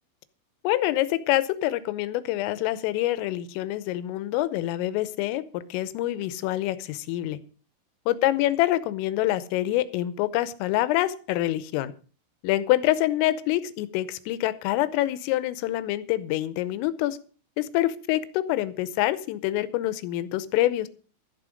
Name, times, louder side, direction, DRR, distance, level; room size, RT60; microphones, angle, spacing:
voice 1, 0.6-7.4 8.1-11.9 12.4-17.2 17.6-20.9, left 15 dB, 85° left, 14 dB, 3.4 m, -26 dB
12.5 x 11.0 x 5.1 m, 0.39 s
omnidirectional pair, 5.8 m